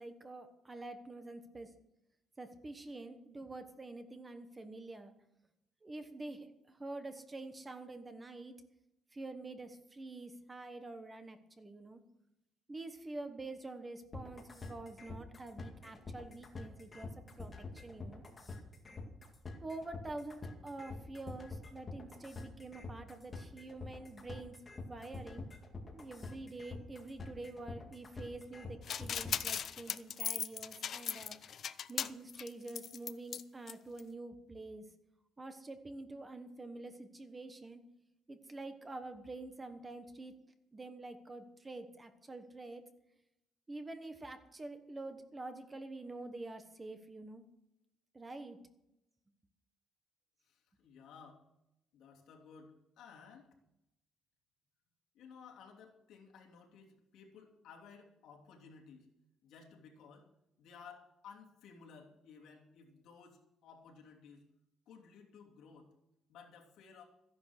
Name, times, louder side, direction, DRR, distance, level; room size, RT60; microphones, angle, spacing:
voice 1, 0.0-1.7 2.4-5.1 5.8-8.6 9.1-12.0 12.7-18.2 19.6-24.6 24.9-25.4 25.9-31.5 31.9-34.9 35.4-37.8 38.3-40.3 40.7-42.9 43.7-47.4 48.1-48.6, right 2 dB, 15° right, 8 dB, 1.1 m, -47 dB
sound 1, 14.1-29.6, left 3 dB, 25° left, 2.2 m, -46 dB
sound 2, 28.9-33.4 33.7-33.8 34.0-34.1, left 8 dB, 45° left, 0.6 m, -38 dB
voice 2, 50.4-51.5 51.9-53.6 55.1-59.1 59.4-60.3 60.6-64.4 64.9-65.9 66.3-67.0, left 6 dB, 70° left, 0 dB, 3.0 m, -56 dB
14.0 x 10.5 x 6.5 m, 0.87 s
cardioid pair, 160°, 0 cm